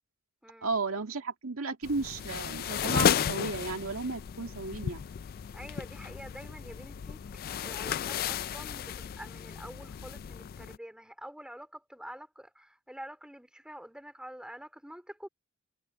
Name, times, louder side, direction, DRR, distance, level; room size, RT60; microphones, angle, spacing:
voice 1, 0.6-5.1, right 3 dB, 85° right, 2.0 m, -34 dB
sound 1, 1.8-10.8, left 8 dB, 45° left, 0.3 m, -34 dB
voice 2, 5.5-15.3, equal, 5° right, 3.3 m, -47 dB
head